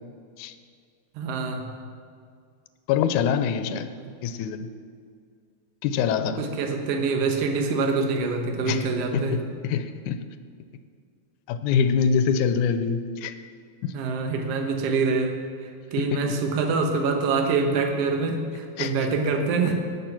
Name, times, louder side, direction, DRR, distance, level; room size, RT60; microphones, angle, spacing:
voice 1, 1.2-1.7 4.0-4.1 6.0-6.1 6.4-9.4 13.9-19.7, right 4 dB, 60° right, 3 dB, 2.0 m, -25 dB
voice 2, 2.9-3.9 4.2-4.7 5.8-6.4 8.7-8.9 9.1-10.2 11.5-13.4 13.8-14.0 16.0-16.3 18.8-18.9, left 7 dB, 85° left, 11 dB, 2.1 m, -25 dB
18.5 x 6.9 x 6.0 m, 2.1 s
omnidirectional pair, 3.5 m